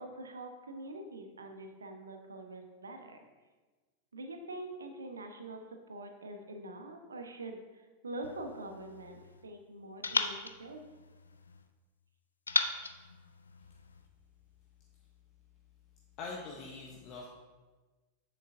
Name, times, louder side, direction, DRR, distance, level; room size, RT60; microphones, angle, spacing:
voice 1, 0.0-3.2 4.1-10.8, right 2 dB, 75° right, 5 dB, 0.7 m, -45 dB
sound 1, 8.2-9.4 10.0-11.6 12.5-14.0, left 4 dB, 75° left, 0.4 m, -37 dB
voice 2, 16.2-17.3, left 4 dB, 35° left, -1 dB, 0.8 m, -43 dB
7.6 x 6.6 x 2.6 m, 1.3 s
figure-of-eight pair, 90°, 0 cm